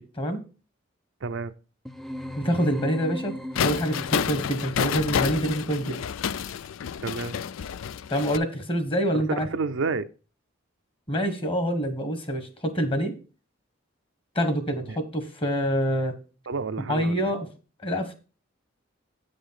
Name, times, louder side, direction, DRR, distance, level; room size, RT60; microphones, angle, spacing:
voice 1, 1.2-1.5 7.0-7.4 9.1-10.1 14.9-15.0 16.5-17.3, right 4 dB, 70° right, 10 dB, 0.5 m, -30 dB
sound 1, 1.9-4.5, equal, ahead, 0.5 m, -37 dB
voice 2, 2.4-6.0 8.1-9.5 11.1-13.1 14.3-16.2 16.9-17.5 17.8-18.2, equal, 25° left, 8 dB, 1.3 m, -26 dB
sound 2, 3.5-8.4, left 8 dB, 85° left, 0.4 m, -29 dB
8.4 x 5.1 x 5.7 m, 0.35 s
head